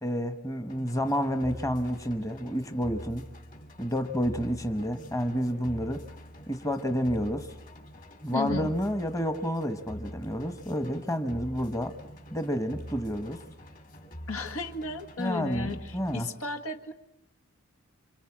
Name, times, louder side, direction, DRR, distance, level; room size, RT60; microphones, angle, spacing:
voice 1, 0.0-3.2 3.8-6.0 6.5-7.5 8.2-11.9 12.3-13.4 15.2-16.3, equal, 15° left, 8 dB, 1.2 m, -30 dB
sound 1, 0.7-16.2, equal, 40° left, 3.0 m, -45 dB
voice 2, 8.3-8.7 14.3-16.9, left 3 dB, 80° left, 7 dB, 2.0 m, -34 dB
28.0 x 26.5 x 7.4 m, 0.83 s
head